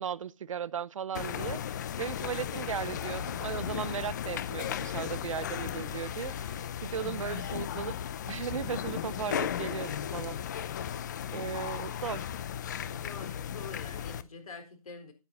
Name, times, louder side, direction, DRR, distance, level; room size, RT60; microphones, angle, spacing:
voice 1, 0.0-7.9 8.3-10.4 11.3-12.3, right 8 dB, 60° right, 0.6 m, -37 dB
sound 1, 1.1-14.2, left 9 dB, 30° left, 0.5 m, -35 dB
voice 2, 12.9-15.1, left 4 dB, 70° left, 4.1 m, -45 dB
11.0 x 9.0 x 4.1 m
hypercardioid pair, 160°, 19 cm